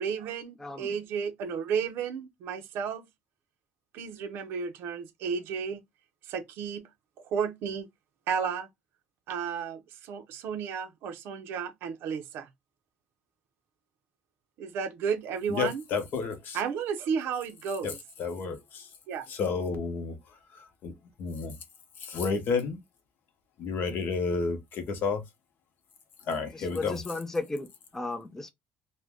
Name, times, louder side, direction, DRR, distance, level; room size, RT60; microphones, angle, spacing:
voice 1, 0.0-3.1 3.9-5.8 6.2-6.8 7.2-7.9 8.3-8.7 9.3-12.5 14.6-15.8 16.5-18.0 19.1-19.3, right 6 dB, 85° right, 0.6 m, -33 dB
voice 2, 15.5-16.6 17.8-17.9 18.2-18.9 19.3-20.1 20.8-20.9 21.2-21.5 22.0-22.8 23.6-25.2 26.3-27.0, left 4 dB, 60° left, 0.8 m, -30 dB
voice 3, 26.5-27.7 27.9-28.5, left 2 dB, 10° left, 0.4 m, -34 dB
2.6 x 2.1 x 3.4 m
cardioid pair, 125°, 4 cm